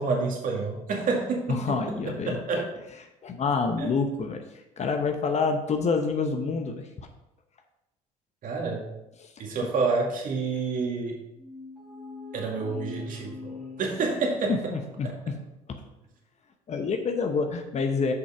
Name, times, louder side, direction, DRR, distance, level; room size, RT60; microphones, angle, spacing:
voice 1, 0.0-2.7 3.8-3.9 8.4-8.9 9.4-11.2 12.3-14.7 15.0-15.1, right 4 dB, 55° right, 0 dB, 2.2 m, -29 dB
voice 2, 1.6-2.6 3.2-4.4 4.8-6.9 9.2-9.3 14.5-15.3 16.7-18.1, left 4 dB, 45° left, 5 dB, 1.0 m, -27 dB
sound 1, 11.4-15.1, left 4 dB, 5° left, 2.4 m, -42 dB
6.8 x 5.2 x 5.0 m, 0.89 s
supercardioid pair, 70°, 16 cm